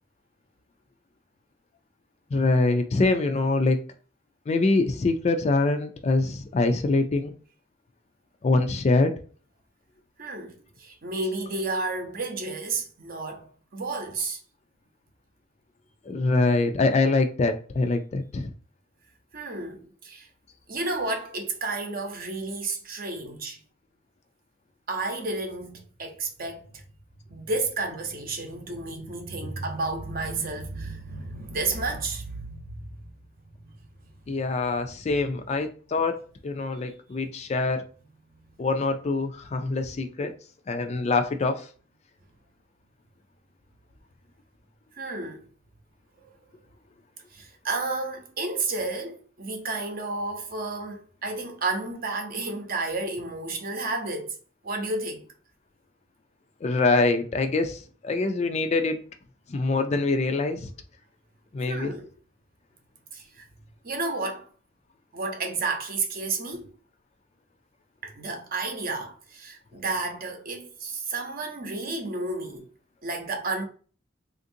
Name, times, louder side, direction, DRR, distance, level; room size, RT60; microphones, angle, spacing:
voice 1, 2.3-3.8 4.5-7.3 8.4-9.1 16.1-18.5 34.3-37.9 38.6-40.3 40.7-41.7 56.6-59.0 59.5-60.7 61.5-61.9, left 3 dB, 35° left, 0.3 m, -24 dB
voice 2, 10.2-14.4 19.3-20.3 20.7-23.6 24.9-26.8 27.3-33.1 33.6-33.9 36.7-36.9 44.9-45.4 46.2-46.3 47.3-54.3 54.6-55.3 61.7-62.1 63.1-63.5 63.8-64.5 65.1-66.7 68.0-72.7 73.0-73.6, right 3 dB, 45° right, 0.7 m, -32 dB
3.5 x 2.5 x 2.6 m
head